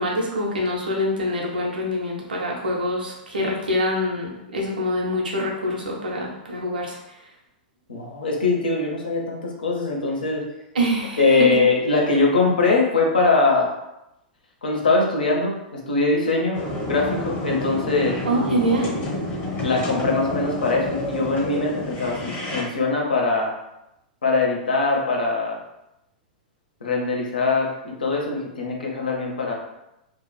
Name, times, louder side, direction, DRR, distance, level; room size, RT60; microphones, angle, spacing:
voice 1, 0.0-7.0 10.7-11.6 18.2-18.9, equal, 80° right, -2 dB, 0.7 m, -25 dB
voice 2, 7.9-10.4 11.2-13.8 14.6-16.6 16.9-18.2 19.6-23.5 24.2-25.6 26.8-29.5, left 3 dB, 80° left, -1 dB, 0.6 m, -22 dB
sound 1, 16.5-22.6, left 1 dB, 35° left, 0.9 m, -29 dB
2.8 x 2.3 x 2.2 m, 0.86 s
figure-of-eight pair, 100°, 5 cm